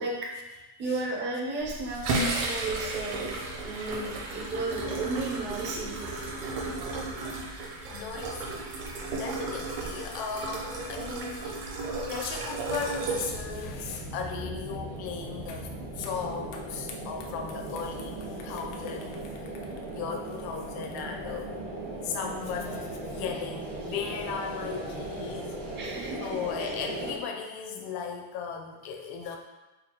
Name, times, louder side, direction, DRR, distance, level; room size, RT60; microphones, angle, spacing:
voice 1, 0.0-3.3 3.6-5.9 25.7-26.7, right 3 dB, 25° right, -2 dB, 0.4 m, -34 dB
sound 1, 1.6-13.9, right 2 dB, 50° right, 0.7 m, -34 dB
voice 2, 7.2-7.5 7.8-8.6 9.1-11.7 12.1-15.7 16.0-19.3 19.9-21.6 22.0-25.5 26.2-29.4, left 6 dB, 50° left, 2 dB, 0.6 m, -37 dB
sound 2, 12.6-27.2, right 1 dB, 65° right, 1.1 m, -38 dB
sound 3, 15.5-15.7 16.0-21.3, left 5 dB, 90° left, 0.7 m, -50 dB
5.0 x 2.3 x 2.8 m, 1.1 s
cardioid pair, 160°, 49 cm